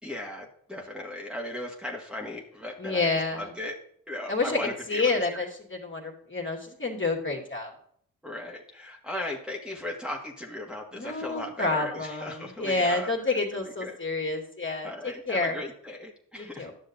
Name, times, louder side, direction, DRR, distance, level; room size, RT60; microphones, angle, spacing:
voice 1, 0.0-3.8 4.1-5.4 8.2-13.1 13.5-14.0 14.8-16.7, left 1 dB, 5° right, -1 dB, 1.6 m, -37 dB
voice 2, 2.8-3.5 4.3-7.7 10.9-15.6 16.4-16.7, left 3 dB, 35° left, 1 dB, 2.2 m, -29 dB
10.5 x 6.5 x 2.7 m, 0.64 s
cardioid pair, 50°, 34 cm